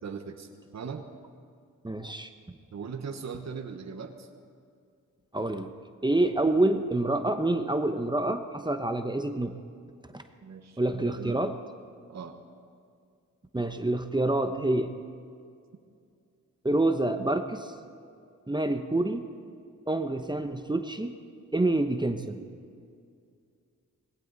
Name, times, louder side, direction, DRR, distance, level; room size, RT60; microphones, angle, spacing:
voice 1, 0.0-0.5 0.7-1.0 2.7-4.3 10.4-11.5 12.1-12.4, right 6 dB, 55° right, 5 dB, 1.3 m, -39 dB
voice 2, 1.8-2.3 5.3-5.7 6.0-9.5 10.1-10.2 10.8-11.5 13.5-14.9 16.6-17.7 18.5-19.2 19.9-21.1 21.5-22.4, right 2 dB, 15° right, 7 dB, 1.0 m, -27 dB
20.0 x 17.5 x 4.2 m, 2.3 s
cardioid pair, 60°, 32 cm